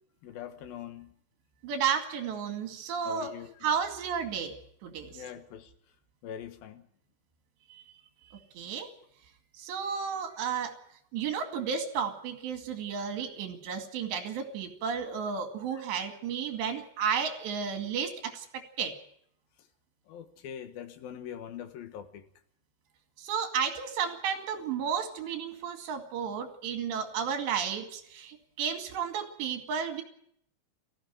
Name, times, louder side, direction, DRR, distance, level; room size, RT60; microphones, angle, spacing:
voice 1, 0.2-1.1 3.0-3.6 5.1-5.7 6.2-6.9 8.8-8.9 15.7-15.9 20.1-22.2, left 9 dB, 65° left, 9 dB, 2.8 m, -43 dB
voice 2, 1.6-3.3 3.6-4.6 4.8-5.2 7.7-7.8 8.3-8.9 9.6-10.8 11.1-19.0 23.2-30.0, right 7 dB, 75° right, 6 dB, 4.6 m, -33 dB
19.0 x 15.5 x 9.3 m, 0.68 s
omnidirectional pair, 5.1 m